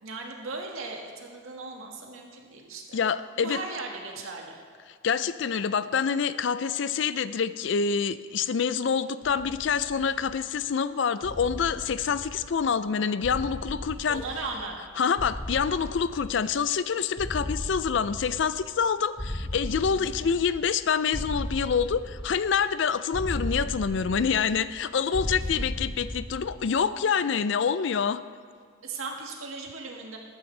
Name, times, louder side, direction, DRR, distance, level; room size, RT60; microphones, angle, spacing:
voice 1, 0.0-3.0 3.4-4.6 14.1-14.8 19.9-20.3 28.8-30.2, right 3 dB, 90° right, 0 dB, 1.8 m, -37 dB
voice 2, 2.9-3.6 5.0-14.2 15.0-28.2, left 6 dB, 60° left, 14 dB, 0.4 m, -26 dB
sound 1, 9.2-10.6 11.2-12.8 13.2-14.8 15.2-16.8 17.2-18.8 19.2-20.8 21.1-22.7 23.1-24.8 25.1-26.8, left 1 dB, 20° left, 1.1 m, -36 dB
14.0 x 12.5 x 3.3 m, 2.1 s
head